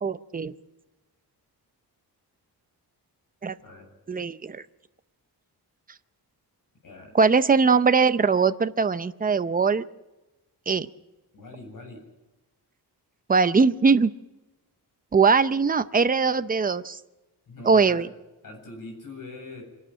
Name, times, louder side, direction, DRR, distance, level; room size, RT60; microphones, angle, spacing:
voice 1, 0.0-0.5 3.4-3.6 4.1-4.6 7.1-9.8 10.7-10.9 13.3-14.1 15.1-17.0 17.6-18.1, right 5 dB, 20° right, 12 dB, 0.6 m, -21 dB
voice 2, 6.8-7.1 11.3-12.0 17.5-18.1 18.4-19.6, left 2 dB, 55° left, 3 dB, 8.0 m, -42 dB
26.5 x 11.5 x 8.7 m, 1.0 s
wide cardioid pair, 170°, 39 cm